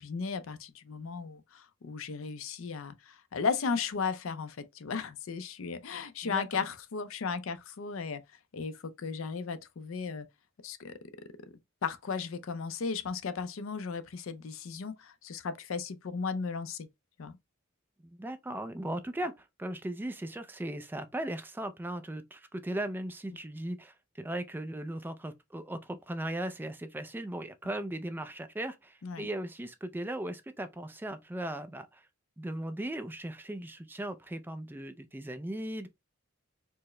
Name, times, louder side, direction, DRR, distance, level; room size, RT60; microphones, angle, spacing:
voice 1, 0.0-8.2 8.5-10.3 10.6-10.9 11.8-16.9 17.2-17.4 29.0-29.3, left 5 dB, 70° left, 0.5 m, -35 dB
voice 2, 6.2-6.6 18.0-32.0 32.4-35.9, right 1 dB, 10° right, 0.3 m, -38 dB
4.5 x 2.0 x 3.1 m
head